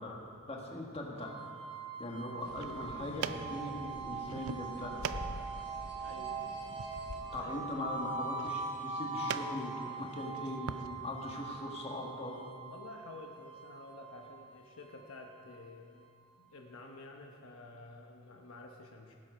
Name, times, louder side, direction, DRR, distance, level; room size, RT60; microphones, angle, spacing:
voice 1, 0.0-1.3 2.0-4.9 7.3-10.8 11.0-12.4, left 1 dB, 30° left, -1 dB, 1.6 m, -40 dB
sound 1, 1.2-16.1, right 4 dB, 25° right, 1.3 m, -42 dB
sound 2, 2.3-10.9, right 7 dB, 80° right, 0.5 m, -45 dB
sound 3, 2.4-7.5, left 3 dB, 50° left, 0.5 m, -48 dB
voice 2, 6.0-6.4 7.4-7.8 12.7-16.0 16.4-19.1, left 2 dB, 70° left, 2 dB, 1.0 m, -51 dB
17.5 x 7.7 x 5.0 m, 2.2 s
head